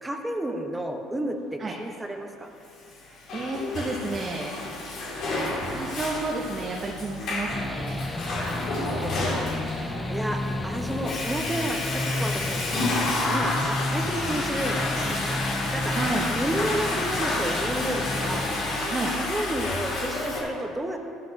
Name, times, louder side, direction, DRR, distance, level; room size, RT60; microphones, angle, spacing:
voice 1, 0.0-2.5 8.3-15.4 15.7-16.0 16.3-21.0, right 1 dB, 10° right, 4 dB, 1.3 m, -32 dB
Water / Toilet flush, 2.9-20.4, left 2 dB, 60° left, 2.7 m, -30 dB
voice 2, 3.0-4.5 5.7-8.1 15.9-16.3 18.9-19.1, right 2 dB, 30° right, -1 dB, 1.1 m, -31 dB
sound 1, 7.5-18.8, left 2 dB, 10° left, 0.4 m, -32 dB
13.0 x 11.5 x 2.9 m, 2.5 s
hypercardioid pair, 60°, 0 cm